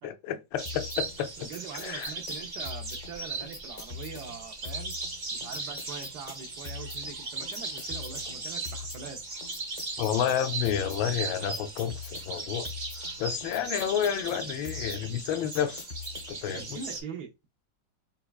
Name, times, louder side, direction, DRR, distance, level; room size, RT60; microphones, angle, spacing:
voice 1, 0.0-1.3 1.8-2.1 10.0-12.7 13.2-15.9 16.3-16.8, left 9 dB, 80° left, 1.3 m, -30 dB
sound 1, 0.6-17.0, right 3 dB, 90° right, 0.4 m, -38 dB
sound 2, 0.7-16.5, left 5 dB, 50° left, 0.6 m, -44 dB
voice 2, 1.4-4.9 5.3-9.2 16.5-17.3, right 6 dB, 65° right, 1.1 m, -43 dB
5.5 x 2.2 x 2.3 m
omnidirectional pair, 2.1 m